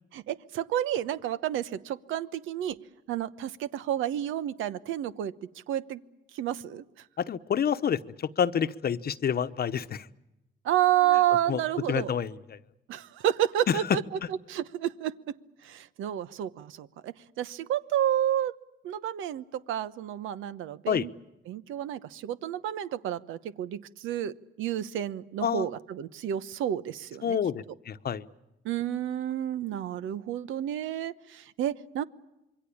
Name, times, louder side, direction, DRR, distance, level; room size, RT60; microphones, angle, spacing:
voice 1, 0.1-2.8 3.1-5.3 5.7-6.0 6.3-6.8 10.6-12.1 12.9-14.0 14.3-15.4 15.6-18.5 18.8-21.1 21.5-27.4 28.6-32.0, right 11 dB, 85° right, 14 dB, 1.1 m, -30 dB
voice 2, 7.2-10.1 11.5-11.6 11.9-12.6 13.7-13.8 20.9-21.1 25.4-25.7 27.2-28.2, left 8 dB, 50° left, 13 dB, 1.0 m, -28 dB
27.0 x 23.0 x 8.6 m, 0.92 s
cardioid pair, 90°, 20 cm